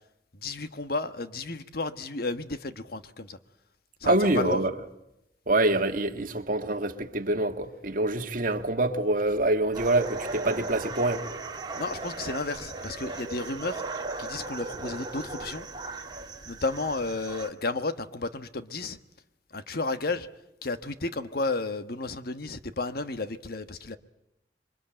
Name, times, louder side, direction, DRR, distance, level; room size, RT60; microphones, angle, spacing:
voice 1, 0.3-3.4 4.0-4.6 11.7-13.8 14.2-15.7 16.4-19.0 19.5-20.3 20.6-24.0, left 3 dB, 60° left, 1.3 m, -32 dB
voice 2, 4.0-4.7 5.5-11.2, right 2 dB, 50° right, 1.7 m, -25 dB
sound 1, 9.7-17.5, right 3 dB, 25° right, 2.0 m, -37 dB
26.5 x 23.5 x 8.9 m
head